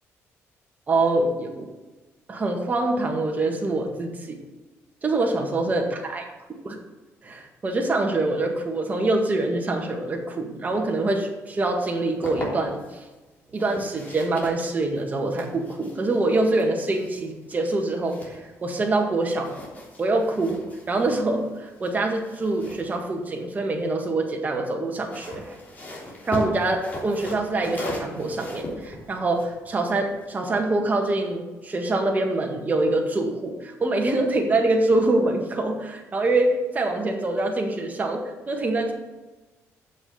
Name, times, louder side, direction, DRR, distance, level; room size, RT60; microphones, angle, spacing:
voice 1, 0.9-1.7 2.3-4.4 5.0-6.2 6.7-6.8 7.2-13.0 13.5-19.5 20.0-25.6 26.3-38.9, right 2 dB, 30° right, 2 dB, 1.8 m, -25 dB
sound 1, 11.8-13.0 13.5-18.9 19.2-23.9 24.9-30.4, left 1 dB, 30° left, 3.2 m, -39 dB
7.6 x 6.2 x 7.0 m, 1.2 s
cardioid pair, 100°, 6 cm